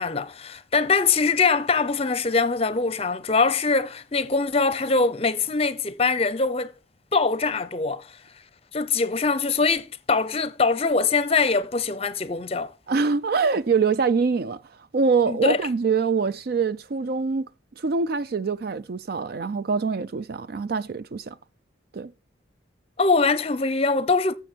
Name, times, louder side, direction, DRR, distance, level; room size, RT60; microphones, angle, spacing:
voice 1, 0.0-6.7 7.1-8.1 8.7-12.7 15.3-15.6 23.0-24.3, left 4 dB, 30° left, 0.6 m, -23 dB
voice 2, 12.9-14.6 14.9-17.5 17.8-21.4 21.9-22.1, right 5 dB, 55° right, 0.4 m, -24 dB
12.0 x 7.1 x 4.5 m
head